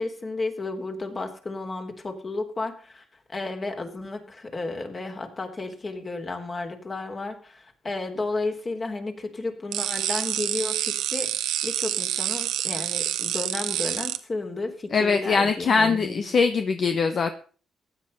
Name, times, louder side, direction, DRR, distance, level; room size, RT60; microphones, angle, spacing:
voice 1, 0.0-3.0 3.3-11.3 11.6-16.3, left 3 dB, 30° left, 5 dB, 3.5 m, -32 dB
sound 1, 9.7-14.2, right 12 dB, 90° right, 1.2 m, -27 dB
voice 2, 14.9-17.3, left 5 dB, 50° left, 8 dB, 1.3 m, -22 dB
15.5 x 10.0 x 5.5 m, 0.40 s
cardioid pair, 90°, 0 cm